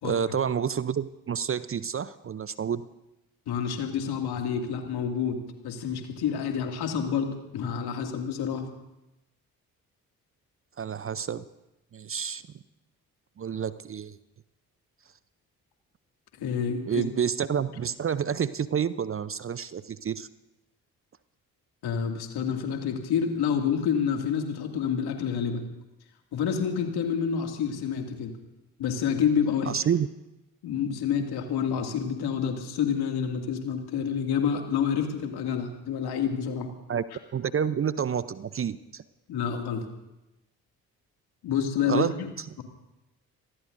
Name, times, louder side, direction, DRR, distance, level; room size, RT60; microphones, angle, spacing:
voice 1, 0.0-2.8 10.8-11.4 11.9-12.4 13.4-14.2 16.9-20.3 29.7-30.1 36.9-37.0 37.3-39.0 41.9-42.1, right 7 dB, 30° right, 16 dB, 0.7 m, -29 dB
voice 2, 3.5-8.7 16.3-17.0 21.8-25.6 26.3-28.3 28.8-29.7 30.6-36.7 39.3-39.9 41.4-42.3, left 7 dB, 60° left, 3 dB, 2.5 m, -28 dB
27.0 x 19.0 x 2.7 m, 0.95 s
figure-of-eight pair, 45°, 44 cm